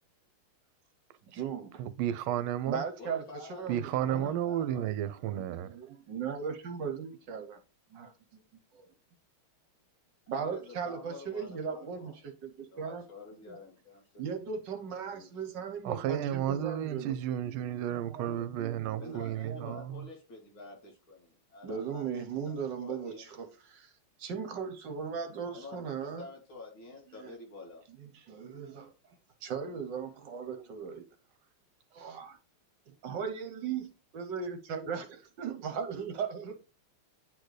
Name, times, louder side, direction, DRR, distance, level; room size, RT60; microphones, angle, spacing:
voice 1, 1.2-1.8 2.7-4.3 5.6-7.6 7.9-8.1 8.7-8.9 10.3-13.0 13.3-13.6 14.2-17.1 17.4-19.8 21.6-23.9 24.2-26.3 27.2-27.3 28.0-28.9 29.4-31.0 31.9-32.4 32.9-33.9 34.1-36.6, right 6 dB, 65° right, 1.4 m, -38 dB
voice 2, 1.8-2.8 3.7-5.8 15.8-20.1, right 11 dB, 80° right, 1.4 m, -32 dB
voice 3, 3.0-4.8 10.3-12.2 12.7-14.4 15.1-15.3 19.0-22.2 22.4-23.2 25.5-27.8, left 3 dB, 70° left, 3.3 m, -48 dB
9.5 x 4.3 x 3.2 m
omnidirectional pair, 2.3 m